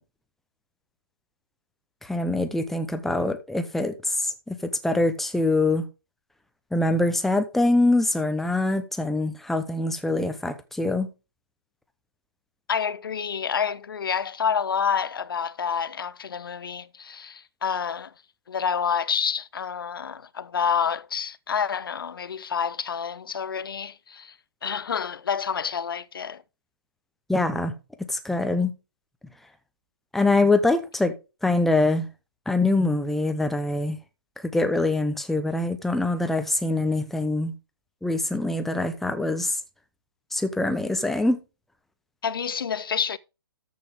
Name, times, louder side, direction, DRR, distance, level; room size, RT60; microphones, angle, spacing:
voice 1, 2.0-4.6 4.8-5.8 6.7-11.1 27.3-27.7 28.1-28.7 30.1-31.1 31.4-32.1 32.5-34.0 34.5-37.5 38.0-39.6 40.3-41.4, left 2 dB, ahead, 0.8 m, -24 dB
voice 2, 12.7-18.1 18.5-24.4 24.6-26.4 42.2-43.2, left 7 dB, 60° left, 0.5 m, -28 dB
13.5 x 5.6 x 3.6 m
figure-of-eight pair, 130°, 13 cm